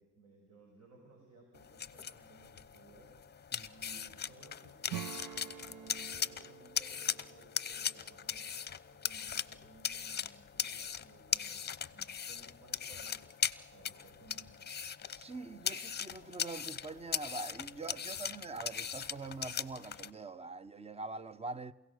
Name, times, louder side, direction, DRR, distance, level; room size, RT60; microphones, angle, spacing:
voice 1, 0.0-3.1 3.6-8.5 8.9-14.7, right 3 dB, 60° right, 5.5 m, -60 dB
sound 1, 1.5-20.1, left 8 dB, 35° left, 0.8 m, -39 dB
Acoustic guitar / Strum, 4.9-9.2, right 11 dB, 80° right, 0.8 m, -48 dB
voice 2, 15.1-21.7, right 3 dB, 20° right, 0.8 m, -44 dB
29.0 x 16.5 x 6.6 m
cardioid pair, 90°, 30 cm